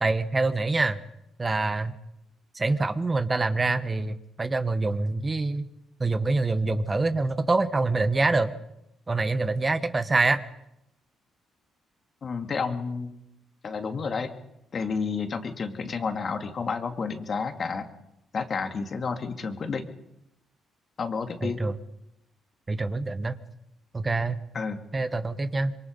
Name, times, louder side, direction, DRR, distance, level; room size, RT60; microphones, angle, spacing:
voice 1, 0.0-1.0 1.4-1.9 2.5-5.7 6.0-8.5 9.1-10.4 21.4-21.7 22.7-23.4 23.9-24.4 24.9-25.7, right 3 dB, 25° right, 11 dB, 1.2 m, -25 dB
voice 2, 12.2-13.2 13.6-14.3 14.7-17.9 18.3-19.8 21.0-21.6 24.5-24.8, left 5 dB, 45° left, 6 dB, 2.4 m, -30 dB
26.0 x 23.0 x 5.4 m, 0.82 s
cardioid pair, 90°, 0 cm